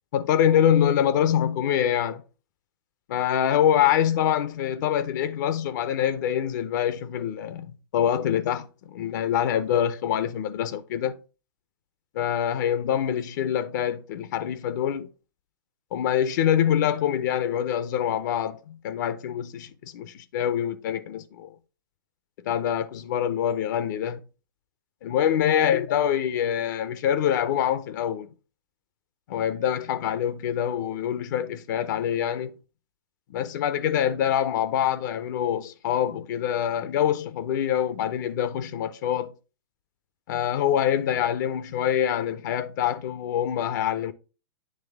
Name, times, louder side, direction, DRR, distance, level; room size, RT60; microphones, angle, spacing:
voice 1, 0.1-2.2 3.1-11.1 12.1-15.1 15.9-21.5 22.5-24.2 25.0-28.3 29.3-32.5 33.3-39.3 40.3-44.1, left 9 dB, 55° left, 0.5 m, -25 dB
8.8 x 3.1 x 3.4 m
hypercardioid pair, 135°, 12 cm